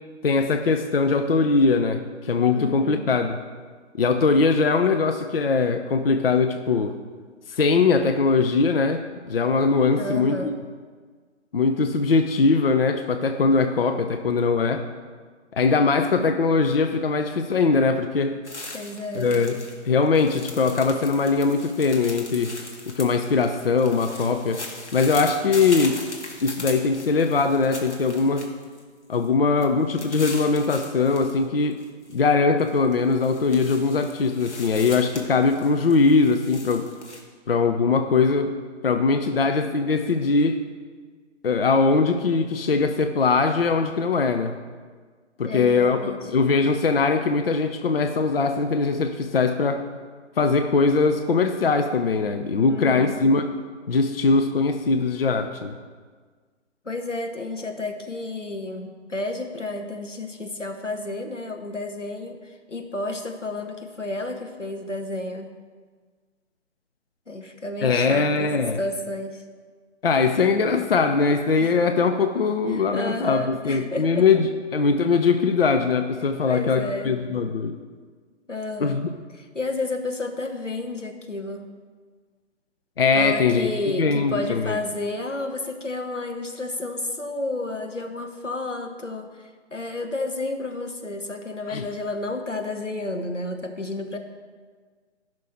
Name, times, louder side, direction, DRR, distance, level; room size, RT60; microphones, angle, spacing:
voice 1, 0.2-3.3 4.0-7.0 7.5-10.6 11.5-14.8 15.5-18.4 19.1-22.5 22.9-24.6 24.9-26.0 26.4-28.5 29.1-31.8 32.1-36.9 37.5-38.5 38.8-40.6 41.4-44.5 45.4-49.8 50.4-53.4 53.9-55.8 67.8-68.8 70.0-77.8 78.8-79.1 83.0-83.7 84.0-84.8 91.7-91.8, left 4 dB, 55° left, 7 dB, 0.7 m, -21 dB
voice 2, 2.5-3.0 9.9-10.5 18.7-19.3 45.4-46.3 52.7-53.1 56.8-65.5 67.3-68.5 68.8-69.4 71.6-71.7 72.7-74.3 76.4-77.1 78.5-79.0 79.3-81.7 83.1-94.2, left 2 dB, 90° left, 4 dB, 1.5 m, -31 dB
sound 1, 18.4-19.8 20.0-28.8 29.1-29.3 29.6-31.3 31.7-32.2 32.6-37.2, left 2 dB, 70° left, 2.0 m, -39 dB
16.0 x 6.3 x 4.4 m, 1.5 s
figure-of-eight pair, 140°, 36 cm